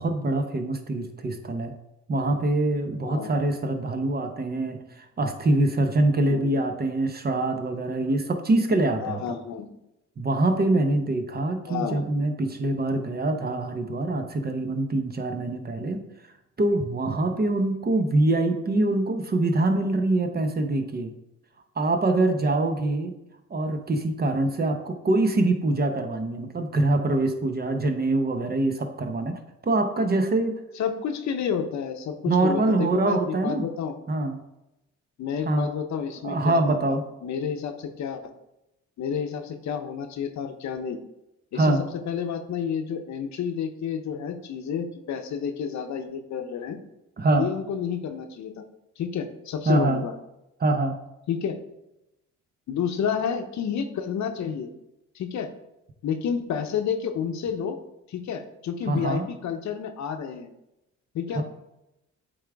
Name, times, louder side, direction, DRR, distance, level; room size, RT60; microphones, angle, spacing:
voice 1, 0.0-1.7 2.1-9.4 10.2-16.0 16.6-21.1 21.8-23.1 23.5-30.6 32.3-33.7 34.1-34.4 35.4-35.7 36.2-37.0 41.5-41.8 47.2-47.5 49.7-50.0 50.6-51.0 58.9-59.2 61.3-61.4, right 2 dB, 30° right, 6 dB, 0.8 m, -24 dB
voice 2, 9.0-9.7 11.7-12.0 30.8-34.0 35.2-37.0 37.2-38.2 39.0-41.0 41.5-46.8 47.3-48.6 49.0-50.1 51.3-51.6 52.7-54.7 55.1-55.5 56.0-57.8 58.1-60.5 61.1-61.4, left 7 dB, 65° left, 7 dB, 0.8 m, -30 dB
8.4 x 3.6 x 3.5 m, 0.89 s
cardioid pair, 90°, 30 cm